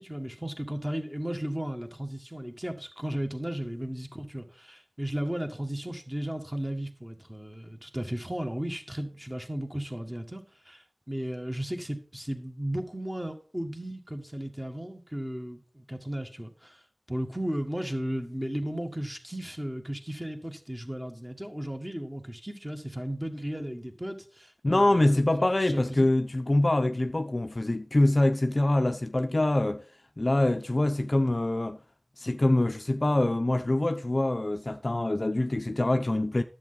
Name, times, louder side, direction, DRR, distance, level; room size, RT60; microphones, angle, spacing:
voice 1, 0.0-16.8 17.1-26.1, right 1 dB, 10° right, 1.6 m, -35 dB
voice 2, 24.6-29.8 30.2-31.8 32.2-36.4, left 1 dB, 45° left, 0.6 m, -25 dB
10.5 x 7.8 x 4.0 m
wide cardioid pair, 55°, 0 cm